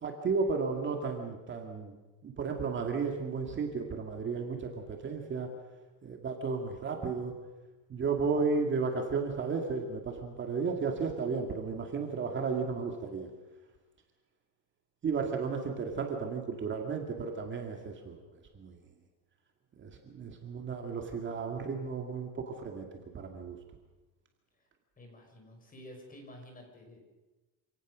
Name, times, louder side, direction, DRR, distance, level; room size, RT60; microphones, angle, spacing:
voice 1, 0.0-1.9 2.2-5.5 6.0-7.3 7.9-13.3 15.0-18.2 18.5-18.8 19.8-22.9 23.1-23.6, right 4 dB, 30° right, 3 dB, 2.3 m, -33 dB
voice 2, 25.0-27.0, left 1 dB, 20° left, 3 dB, 5.2 m, -50 dB
27.5 x 17.5 x 6.3 m, 1.2 s
cardioid pair, 150°, 38 cm